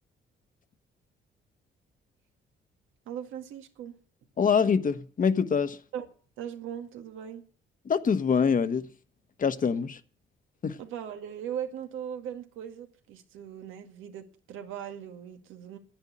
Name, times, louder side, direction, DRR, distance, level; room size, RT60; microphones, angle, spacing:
voice 1, 3.1-4.0 5.9-6.1 6.4-7.4 10.8-15.8, right 9 dB, 90° right, 2.0 m, -39 dB
voice 2, 4.4-5.8 7.9-8.9 9.4-10.0 10.6-10.8, left 6 dB, 45° left, 1.2 m, -25 dB
10.5 x 10.5 x 8.6 m
cardioid pair, 90°, 20 cm